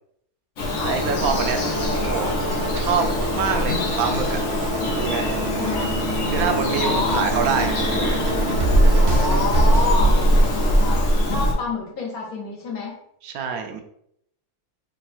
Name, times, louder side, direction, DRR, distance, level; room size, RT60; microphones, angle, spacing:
Bird vocalization bird call bird song, 0.6-11.5, equal, 60° left, 1.1 m, -21 dB
voice 1, 0.8-4.4 4.9-5.3 6.3-8.4 13.2-13.8, right 6 dB, 80° right, 5 dB, 1.0 m, -26 dB
sound 1, 1.4-9.8, right 3 dB, 60° right, 0.8 m, -29 dB
voice 2, 4.7-5.0 5.6-6.0 6.8-7.2 9.0-10.2 10.7-13.0, left 3 dB, 80° left, -1 dB, 1.5 m, -28 dB
3.6 x 2.3 x 4.1 m, 0.72 s
omnidirectional pair, 1.5 m